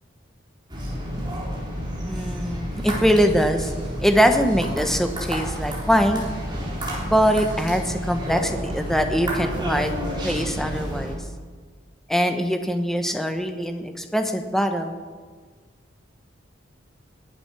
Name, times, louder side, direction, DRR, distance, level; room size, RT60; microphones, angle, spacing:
sound 1, 0.7-11.1, equal, 25° right, 3.5 m, -30 dB
voice 1, 2.1-3.7 4.0-6.2 7.0-9.9 10.2-11.2 12.1-14.9, equal, ahead, 6 dB, 1.0 m, -22 dB
20.5 x 7.9 x 5.9 m, 1.5 s
head